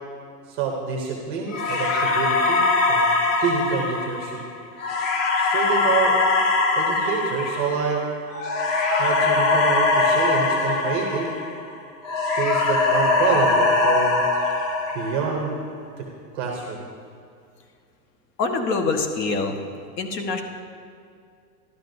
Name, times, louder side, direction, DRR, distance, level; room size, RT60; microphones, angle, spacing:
voice 1, 0.5-3.1 3.4-4.4 5.4-6.2 6.7-8.0 9.0-11.3 12.3-14.3 14.9-15.5 16.0-16.1 16.3-16.9, right 6 dB, 15° right, 0 dB, 0.4 m, -27 dB
sound 1, 1.5-11.7 12.0-15.5, left 3 dB, 50° left, 1.4 m, -22 dB
voice 2, 18.4-19.6 20.0-20.4, left 3 dB, 75° left, 5 dB, 1.4 m, -25 dB
12.5 x 12.0 x 2.6 m, 2.3 s
supercardioid pair, 155°, 49 cm